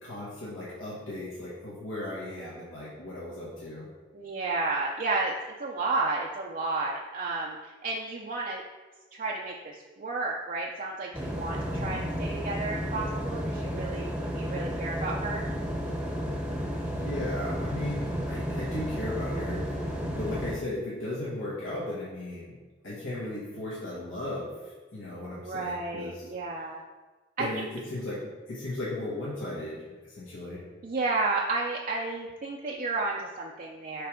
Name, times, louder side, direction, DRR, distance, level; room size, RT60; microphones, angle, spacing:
voice 1, 0.0-3.9 11.7-12.1 16.9-19.8 20.2-22.6 22.8-26.2 27.4-30.6, left 1 dB, 85° left, -7 dB, 1.4 m, -36 dB
voice 2, 4.1-8.6 9.1-15.4 25.4-26.8 27.4-27.6 30.8-34.1, right 3 dB, 45° right, -2 dB, 0.5 m, -32 dB
sound 1, 11.1-20.6, equal, 5° right, 0.8 m, -32 dB
6.7 x 3.3 x 5.0 m, 1.3 s
head